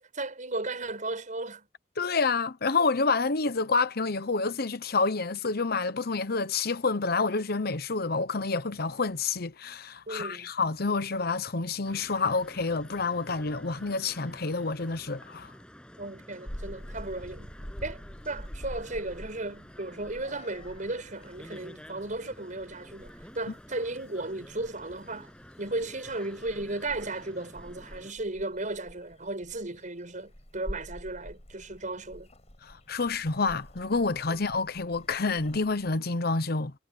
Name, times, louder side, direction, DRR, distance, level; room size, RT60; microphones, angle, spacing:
voice 1, 0.0-1.7 10.1-10.5 16.0-17.5 17.8-25.3 25.6-32.3 34.3-34.4, right 2 dB, 45° right, 6.5 m, -35 dB
voice 2, 2.0-15.5 32.6-36.7, left 4 dB, 55° left, 1.0 m, -28 dB
sound 1, 11.8-28.1, equal, 5° left, 7.4 m, -50 dB
Purr / Meow, 16.5-36.0, equal, 35° left, 7.6 m, -47 dB
head